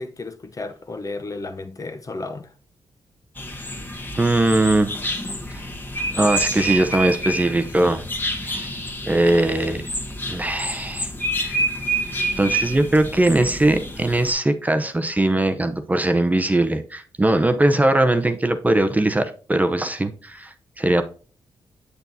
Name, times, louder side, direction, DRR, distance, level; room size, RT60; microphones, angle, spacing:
voice 1, 0.0-2.5, left 3 dB, 35° left, 0.8 m, -33 dB
sound 1, 3.4-14.3, right 1 dB, 20° left, 1.6 m, -28 dB
voice 2, 4.2-5.0 5.5-5.6 6.1-8.0 8.4-8.7 9.1-9.8 10.3-11.6 12.4-21.0, right 1 dB, 15° right, 0.7 m, -20 dB
7.8 x 6.9 x 2.7 m
cardioid pair, 70°, 10 cm